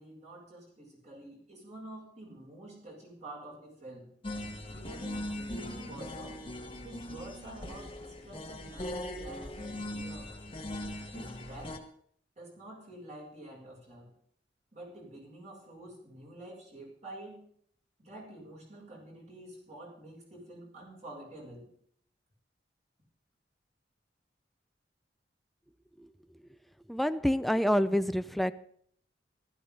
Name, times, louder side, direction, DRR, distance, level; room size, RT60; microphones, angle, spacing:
voice 1, 0.0-4.1 4.7-6.4 6.8-10.3 11.1-11.8 12.4-14.2 14.7-17.4 18.0-21.7, right 1 dB, 40° right, -3 dB, 7.0 m, -48 dB
sound 1, 4.2-11.8, left 1 dB, 30° left, 1.6 m, -40 dB
voice 2, 26.9-28.7, equal, ahead, 13 dB, 0.5 m, -28 dB
15.5 x 14.0 x 3.9 m, 0.62 s
head